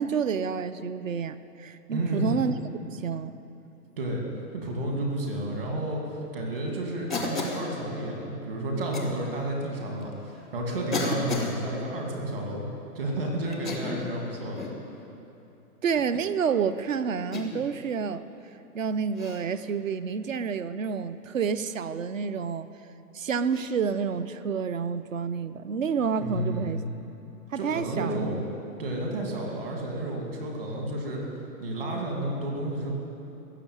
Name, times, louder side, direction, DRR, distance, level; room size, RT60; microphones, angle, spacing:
voice 1, 0.0-2.6 2.9-3.4 15.8-18.2 18.7-22.7 23.1-26.8 27.5-28.4, right 6 dB, 55° right, 13 dB, 0.7 m, -29 dB
voice 2, 1.9-2.4 4.0-4.2 4.5-6.0 6.3-12.7 12.9-14.7 26.2-26.9 27.5-28.4 28.8-31.2 31.6-32.9, right 1 dB, 35° right, 0 dB, 2.4 m, -31 dB
Cough, 7.1-7.7 8.9-9.1 10.0-10.1 10.9-11.6 13.5-14.1 14.6-14.8 15.9-16.3 17.3-17.7 19.2-19.4 21.6-21.8 23.5-23.7, left 3 dB, ahead, 0.5 m, -33 dB
16.0 x 7.4 x 9.2 m, 2.9 s
hypercardioid pair, 180°, 47 cm